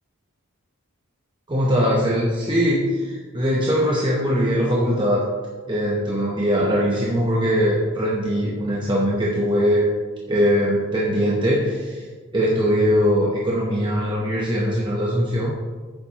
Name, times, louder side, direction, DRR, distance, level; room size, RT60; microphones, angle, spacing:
voice 1, 1.5-5.3 5.7-9.8 10.3-12.1 12.3-15.5, equal, 20° right, -4 dB, 0.9 m, -21 dB
9.2 x 7.0 x 2.9 m, 1.4 s
head